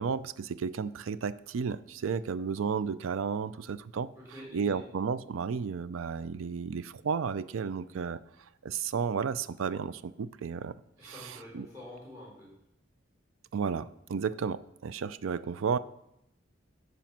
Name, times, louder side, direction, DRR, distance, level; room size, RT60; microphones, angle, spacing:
voice 1, 0.0-4.1 4.5-8.2 8.6-10.7 11.0-11.7 13.5-15.8, right 6 dB, 90° right, 16 dB, 0.4 m, -33 dB
voice 2, 4.2-4.9 11.0-12.5, left 1 dB, 15° right, -4 dB, 3.8 m, -47 dB
9.1 x 5.1 x 5.9 m, 0.82 s
head